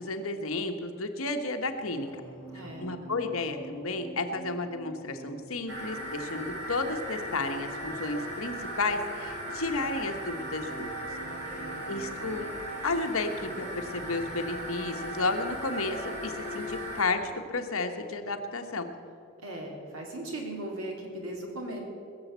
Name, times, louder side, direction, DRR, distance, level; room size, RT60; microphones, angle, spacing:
voice 1, 0.0-2.1 2.8-10.9 11.9-12.5 12.8-18.9, left 3 dB, 75° left, 5 dB, 1.3 m, -32 dB
sound 1, 1.6-18.3 18.5-18.9, right 3 dB, 10° left, 2.3 m, -50 dB
voice 2, 2.5-2.9 11.2-11.8 19.4-21.8, right 1 dB, 85° right, 0 dB, 3.4 m, -38 dB
sound 2, 5.7-17.0, equal, 55° right, 3.8 m, -38 dB
20.5 x 7.2 x 8.1 m, 2.5 s
head